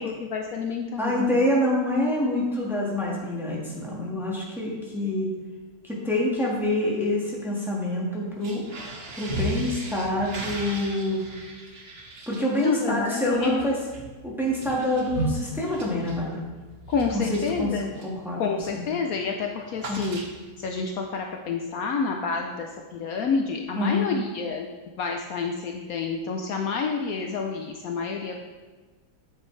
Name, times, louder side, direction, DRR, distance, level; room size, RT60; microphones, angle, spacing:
voice 1, 0.0-1.2 12.5-13.7 16.9-17.9 18.4-20.2 20.6-24.7 25.0-28.4, left 5 dB, 70° left, 3 dB, 1.0 m, -29 dB
voice 2, 1.0-5.3 5.8-8.6 9.2-11.2 12.3-13.8 14.2-16.4 17.1-17.7 18.0-18.4 18.7-18.8 19.9-20.1 23.7-24.1, left 1 dB, ahead, -4 dB, 1.5 m, -26 dB
sound 1, 8.4-18.2 18.6-18.9 19.1-20.7, right 2 dB, 45° right, 1.1 m, -36 dB
8.2 x 7.4 x 3.2 m, 1.3 s
omnidirectional pair, 1.8 m